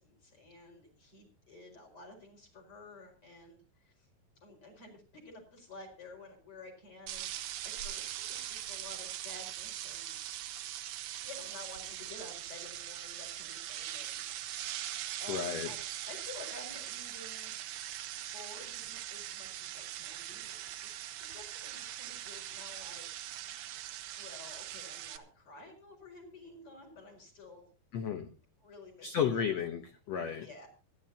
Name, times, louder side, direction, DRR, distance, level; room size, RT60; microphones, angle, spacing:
voice 1, 0.0-4.1 4.4-10.2 11.2-14.2 15.2-15.8 16.0-17.6 18.1-23.8 24.1-27.7 28.6-29.6 30.4-30.7, left 2 dB, 35° left, 2 dB, 5.7 m, -52 dB
sound 1, 7.1-25.2, right 12 dB, 70° right, 2.4 m, -41 dB
voice 2, 15.3-15.7 27.9-28.3 29.0-30.5, left 7 dB, 70° left, 6 dB, 1.6 m, -33 dB
25.5 x 11.0 x 2.8 m, 0.33 s
omnidirectional pair, 4.5 m